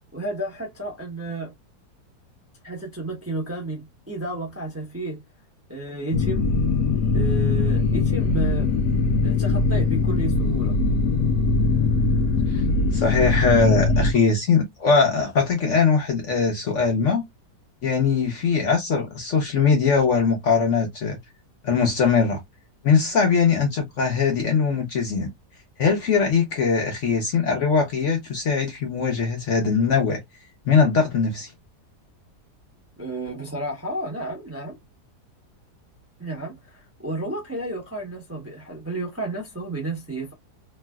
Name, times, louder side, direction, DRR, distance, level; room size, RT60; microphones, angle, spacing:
voice 1, 0.1-1.5 2.6-5.2 5.7-6.5 7.1-8.7 9.2-10.8 33.0-34.8 36.2-40.3, right 2 dB, 15° right, 0.7 m, -32 dB
sound 1, 6.1-14.1, left 3 dB, 85° left, 1.2 m, -21 dB
voice 2, 12.9-17.2 17.8-21.2 21.6-22.4 22.8-25.3 25.8-30.2 30.7-31.5, left 5 dB, 55° left, 0.9 m, -21 dB
3.2 x 2.4 x 2.2 m
omnidirectional pair, 1.8 m